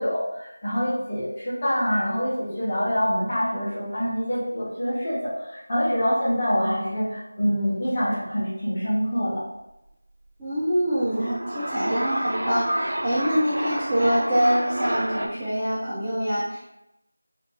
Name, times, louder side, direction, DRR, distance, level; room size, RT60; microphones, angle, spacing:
voice 1, 0.0-9.4, equal, 20° left, -10 dB, 1.0 m, -25 dB
voice 2, 10.4-16.7, equal, 5° right, -15 dB, 0.4 m, -25 dB
sound 1, 10.9-15.3, right 1 dB, 60° right, 0.5 m, -29 dB
3.5 x 2.3 x 3.3 m, 0.88 s
figure-of-eight pair, 180°, 0 cm